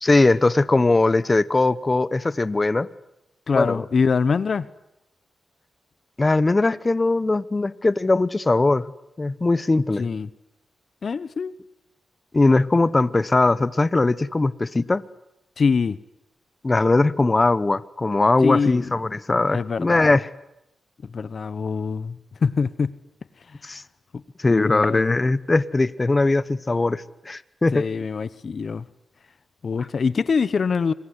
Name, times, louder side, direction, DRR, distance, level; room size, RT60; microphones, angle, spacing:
voice 1, 0.0-2.9 3.6-3.8 6.2-8.9 9.2-10.1 12.3-15.0 16.6-20.3 23.6-23.8 24.4-27.8, left 2 dB, 25° left, 16 dB, 1.0 m, -20 dB
voice 2, 3.5-4.7 10.0-10.3 11.0-11.5 15.6-16.0 18.4-18.9 19.5-20.2 21.0-23.0 24.1-24.2 24.5-25.2 27.7-28.8 29.6-30.9, left 5 dB, 55° left, 17 dB, 0.9 m, -24 dB
26.0 x 21.5 x 9.7 m, 0.85 s
cardioid pair, 80°, 0 cm